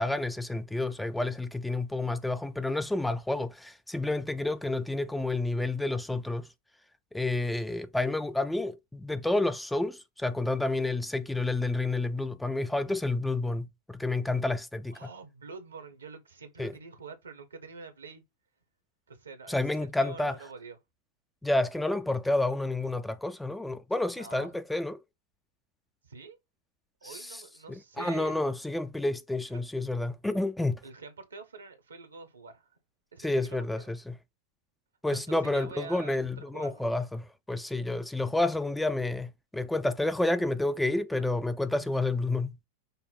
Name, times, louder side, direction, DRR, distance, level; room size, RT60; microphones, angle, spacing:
voice 1, 0.0-6.5 7.1-15.1 16.6-16.7 19.5-20.4 21.4-25.0 27.0-27.4 27.7-30.8 33.2-34.2 35.0-42.6, left 2 dB, 5° left, 0.3 m, -30 dB
voice 2, 14.9-18.2 19.1-19.6 20.0-20.8 24.2-24.5 26.0-26.4 27.0-28.4 29.5-29.6 30.8-32.7 33.1-33.6 35.1-36.8 41.2-41.3, right 4 dB, 75° right, 0.9 m, -46 dB
5.4 x 2.1 x 4.0 m
figure-of-eight pair, 90°, 0 cm